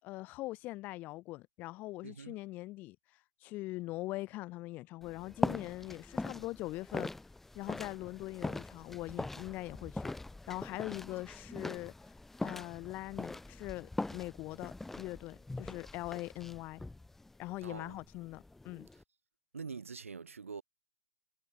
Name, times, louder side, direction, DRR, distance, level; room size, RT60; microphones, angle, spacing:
voice 1, 0.0-3.0 3.4-7.1 7.5-10.1 10.5-11.9 12.4-16.8 17.4-18.9, left 19 dB, 25° left, 4.6 m, -42 dB
voice 2, 2.0-2.3 17.6-17.9 19.5-20.6, right 5 dB, 80° right, 3.0 m, -44 dB
sound 1, 5.0-19.0, left 2 dB, 5° left, 4.1 m, -41 dB
hypercardioid pair, 145°, 7 cm